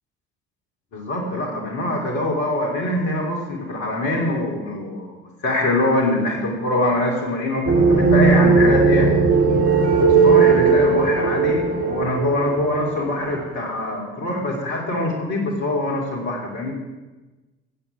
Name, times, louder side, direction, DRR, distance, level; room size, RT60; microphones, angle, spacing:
voice 1, 0.9-9.1 10.1-16.7, left 1 dB, 55° left, 0 dB, 2.9 m, -24 dB
sound 1, 7.7-13.5, right 4 dB, 40° right, 2.4 m, -17 dB
15.0 x 8.7 x 6.0 m, 1.2 s
figure-of-eight pair, 50°, 34 cm